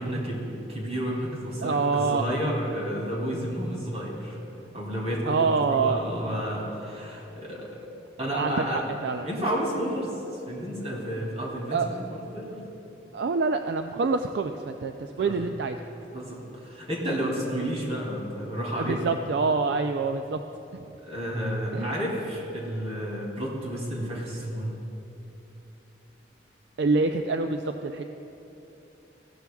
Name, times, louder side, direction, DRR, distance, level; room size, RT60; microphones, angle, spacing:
voice 1, 0.0-4.4 4.7-7.7 8.2-8.8 9.2-12.6 15.2-15.4 16.1-19.1 21.0-24.8, equal, 35° right, -4 dB, 2.6 m, -31 dB
voice 2, 1.6-2.3 5.3-6.0 8.4-9.3 11.7-11.9 13.1-15.8 18.8-20.4 20.8-20.9 21.7-22.0 26.8-28.1, right 4 dB, 60° right, 6 dB, 0.4 m, -26 dB
16.0 x 13.0 x 2.3 m, 3.0 s
head